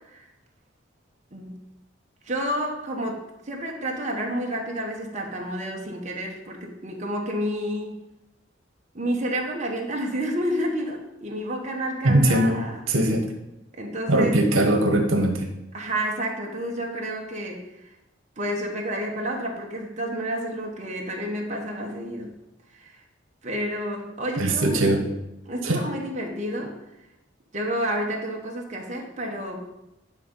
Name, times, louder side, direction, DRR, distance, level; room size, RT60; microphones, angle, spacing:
voice 1, 1.3-1.7 2.2-8.0 8.9-12.8 13.8-14.4 15.7-17.9 18.4-22.3 22.7-23.0 23.4-24.9 25.5-26.8 27.5-29.7, right 1 dB, 35° right, 0 dB, 1.2 m, -30 dB
voice 2, 12.0-12.6 12.9-13.3 14.1-15.5 24.4-25.0 25.6-25.8, right 1 dB, 90° right, 4 dB, 1.1 m, -20 dB
9.6 x 3.8 x 5.5 m, 0.92 s
head